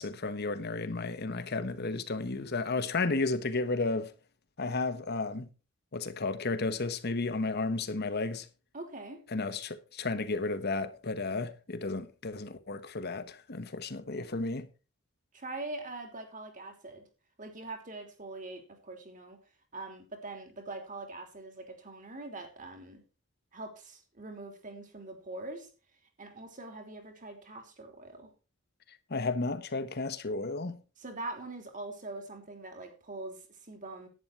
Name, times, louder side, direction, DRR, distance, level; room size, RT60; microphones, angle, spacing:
voice 1, 0.0-4.1 4.6-5.5 5.9-8.5 9.3-14.7 28.9-30.8, left 3 dB, 50° left, 1.1 m, -33 dB
voice 2, 8.7-9.2 15.3-17.0 17.4-19.4 19.7-23.0 23.5-25.7 26.2-28.3 31.0-34.1, right 2 dB, 40° right, 3.2 m, -43 dB
11.0 x 9.8 x 4.5 m
head